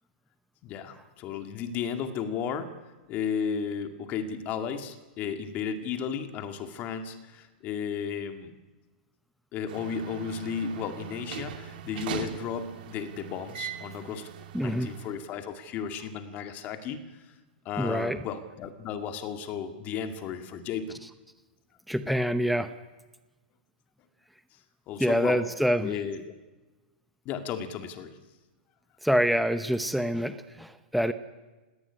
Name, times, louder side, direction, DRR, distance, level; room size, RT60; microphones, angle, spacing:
voice 1, 0.6-2.7 3.1-8.5 9.5-14.3 14.5-17.3 17.7-21.0 24.9-25.4 25.8-26.3 27.3-28.2, left 7 dB, 30° left, 7 dB, 2.1 m, -34 dB
sound 1, 9.7-15.2, right 9 dB, 65° right, 2.5 m, -40 dB
voice 2, 14.5-14.9 17.8-18.2 21.9-22.7 25.0-25.9 29.0-31.1, equal, ahead, 10 dB, 0.7 m, -26 dB
19.0 x 17.5 x 10.0 m, 1.2 s
hypercardioid pair, 145°, 5 cm